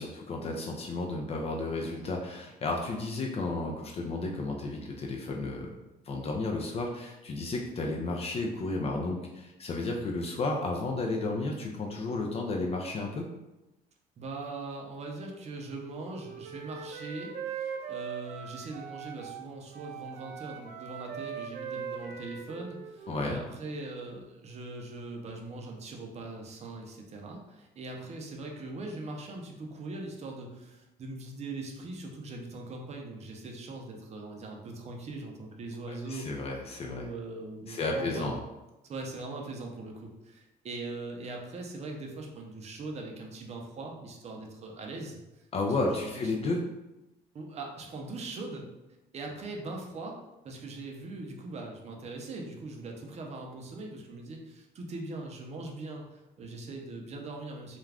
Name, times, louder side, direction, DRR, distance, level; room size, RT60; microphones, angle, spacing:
voice 1, 0.0-5.7 6.1-13.2 23.1-23.4 35.9-37.1 37.7-38.4 45.5-46.6, left 2 dB, 35° left, 0 dB, 0.4 m, -32 dB
voice 2, 14.2-36.3 36.9-38.4 38.9-46.3 47.3-48.7 49.1-57.8, right 2 dB, 40° right, 1 dB, 0.6 m, -41 dB
Wind instrument woodwind instrument, 16.0-19.4 19.7-23.3, right 7 dB, 85° right, 0.4 m, -40 dB
2.4 x 2.2 x 3.3 m, 0.99 s
cardioid pair, 110°, 17 cm